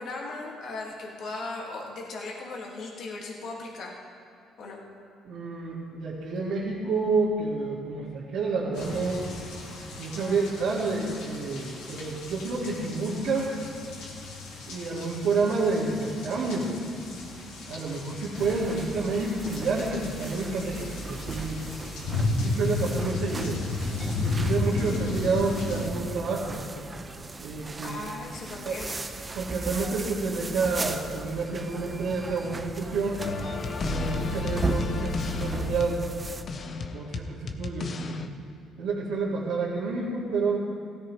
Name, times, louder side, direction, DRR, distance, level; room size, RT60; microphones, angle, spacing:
voice 1, 0.0-4.0 4.6-4.8 10.1-10.7 27.8-29.0, left 3 dB, 65° left, -2 dB, 2.1 m, -38 dB
voice 2, 5.3-9.2 10.0-13.5 14.7-16.7 17.7-21.6 22.4-23.6 24.0-26.6 27.4-28.1 28.7-28.8 29.3-33.3 33.8-36.0 36.9-38.3 38.8-40.6, right 4 dB, 75° right, -8 dB, 2.2 m, -29 dB
sound 1, 8.7-25.9, left 2 dB, 90° left, 2.2 m, -34 dB
sound 2, 18.3-36.4, right 3 dB, 25° right, 0.8 m, -37 dB
sound 3, 33.2-38.3, left 4 dB, 50° left, 0.9 m, -32 dB
16.0 x 14.0 x 3.3 m, 2.5 s
supercardioid pair, 80°, 0 cm